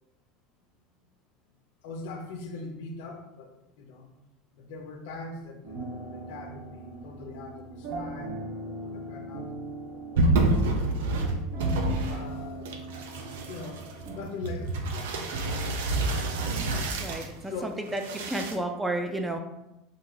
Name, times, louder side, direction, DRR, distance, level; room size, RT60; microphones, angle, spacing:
voice 1, 1.8-4.1 4.5-9.5 9.8-11.0 12.0-12.7 13.5-13.8 14.1-15.2 15.5-16.6 17.5-17.8, left 3 dB, 75° left, 3 dB, 0.5 m, -42 dB
sound 1, 5.6-14.2, right 2 dB, 65° right, 0.8 m, -40 dB
sound 2, 10.1-12.4 12.6-17.3 17.9-18.5, right 2 dB, 80° right, 0.4 m, -28 dB
voice 2, 17.0-19.4, right 1 dB, 10° right, 5 dB, 0.3 m, -32 dB
2.6 x 2.3 x 3.0 m, 0.89 s
supercardioid pair, 105°, 0 cm